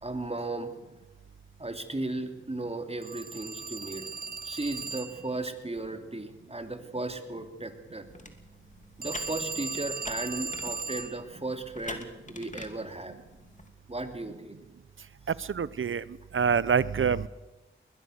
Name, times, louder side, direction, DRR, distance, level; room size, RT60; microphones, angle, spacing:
voice 1, 0.0-0.7 1.6-4.1 4.4-8.1 9.0-13.2 13.9-14.6, right 2 dB, 30° right, 6 dB, 2.9 m, -35 dB
Telephone, 3.0-5.3 9.0-11.2, right 4 dB, 50° right, 0.7 m, -37 dB
sound 1, 8.1-13.7, left 2 dB, 40° left, 2.7 m, -46 dB
voice 2, 15.4-16.0 16.3-17.3, right 6 dB, 85° right, 19 dB, 0.7 m, -26 dB
21.0 x 21.0 x 6.5 m, 1.0 s
cardioid pair, 45°, 20 cm